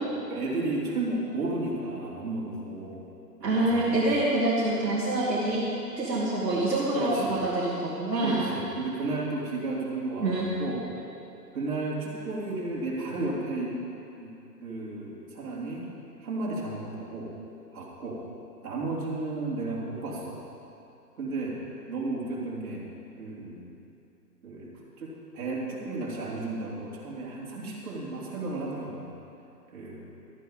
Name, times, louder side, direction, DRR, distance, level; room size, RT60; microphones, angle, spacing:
voice 1, 0.3-3.0 3.4-4.1 6.9-7.4 8.2-10.9 11.5-13.8 14.2-14.4 14.6-15.9 16.2-17.4 17.7-18.2 18.6-20.4 21.2-21.6 21.9-22.8 23.2-23.8 24.4-29.1 29.7-30.1, right 2 dB, 55° right, -4 dB, 3.5 m, -33 dB
voice 2, 3.4-5.6 6.0-8.5 10.2-10.5, right 2 dB, 70° right, -7 dB, 2.6 m, -26 dB
13.0 x 11.0 x 5.3 m, 2.7 s
figure-of-eight pair, 135°, 50 cm